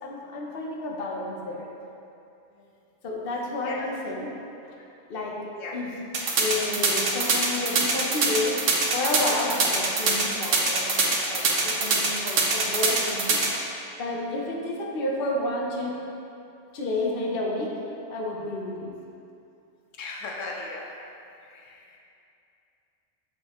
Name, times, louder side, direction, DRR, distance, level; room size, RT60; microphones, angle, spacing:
voice 1, 0.0-1.7 3.0-4.3 5.1-5.9 6.4-8.6 8.9-13.4 14.0-16.0 16.7-17.7 18.1-18.9, left 2 dB, 50° left, -2 dB, 1.0 m, -30 dB
sound 1, 6.1-13.5, right 4 dB, 85° right, 1.3 m, -23 dB
voice 2, 20.0-20.9 21.5-22.0, left 3 dB, 85° left, -1 dB, 1.1 m, -37 dB
7.1 x 6.9 x 3.0 m, 2.7 s
omnidirectional pair, 1.3 m